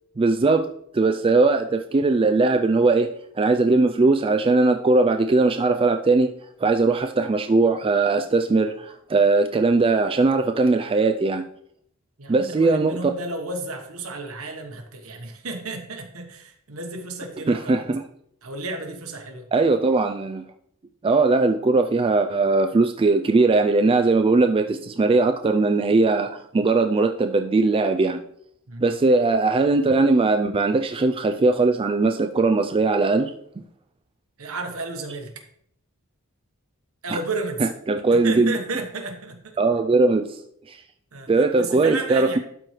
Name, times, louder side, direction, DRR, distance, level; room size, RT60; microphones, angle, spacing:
voice 1, 0.2-0.7 0.9-3.1 3.4-6.3 6.6-11.5 12.3-13.1 17.5-18.0 19.5-20.4 21.0-28.2 28.8-33.3 37.1-37.2 37.6-38.6 39.6-40.4 40.7-40.8 41.3-42.4, right 3 dB, 25° right, 6 dB, 0.3 m, -20 dB
voice 2, 12.2-17.9 18.4-19.4 28.7-28.9 34.4-35.4 37.0-37.7 38.1-39.6 41.1-42.4, right 2 dB, 70° right, 5 dB, 1.2 m, -33 dB
12.0 x 4.5 x 3.2 m, 0.68 s
head